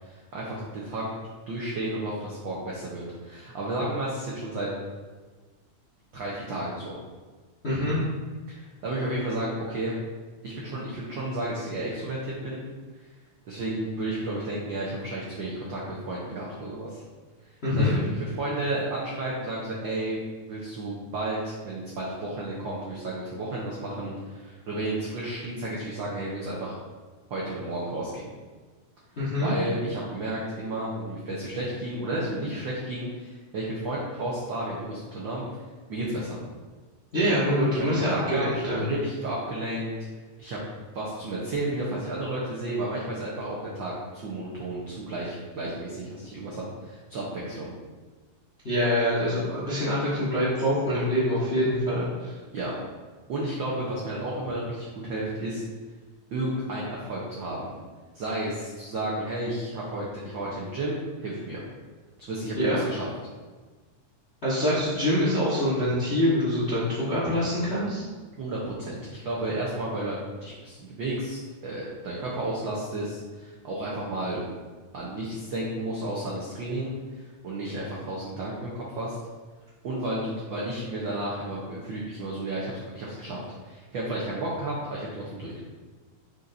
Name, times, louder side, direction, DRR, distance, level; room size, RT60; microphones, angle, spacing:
voice 1, 0.0-1.0 1.5-4.7 6.1-7.0 8.5-9.9 10.4-12.6 13.4-15.8 16.1-17.0 17.8-20.2 20.5-26.7 27.3-28.2 29.4-35.4 35.9-36.4 37.7-39.9 40.4-40.6 40.9-47.7 52.5-52.7 53.3-55.6 56.3-57.7 58.1-61.6 62.3-63.1 68.4-74.4 74.9-79.2 79.8-85.6, right 1 dB, 80° right, -5 dB, 1.0 m, -32 dB
voice 2, 7.6-8.0 17.6-18.0 29.2-29.5 37.1-38.9 48.6-52.3 62.6-62.8 64.4-68.0, equal, 45° left, -8 dB, 0.8 m, -25 dB
6.7 x 5.7 x 2.6 m, 1.4 s
omnidirectional pair, 3.4 m